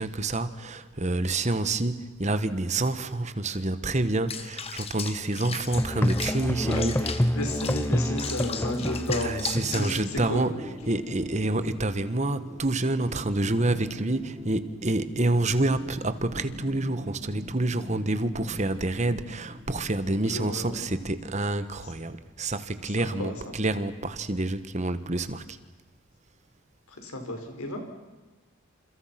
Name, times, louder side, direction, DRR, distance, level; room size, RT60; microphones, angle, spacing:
voice 1, 0.0-7.4 9.1-10.6 10.9-25.6, right 2 dB, 30° right, 1.4 m, -28 dB
Water / Bathtub (filling or washing), 4.3-10.1, left 6 dB, 25° left, 1.5 m, -37 dB
Musical instrument, 5.7-10.5, equal, 10° left, 0.8 m, -28 dB
voice 2, 6.6-10.4 20.2-20.9 23.0-23.3 26.9-27.8, left 1 dB, 85° left, 5.9 m, -33 dB
sound 1, 9.1-21.1, left 1 dB, 15° right, 4.9 m, -44 dB
29.0 x 28.5 x 6.0 m
head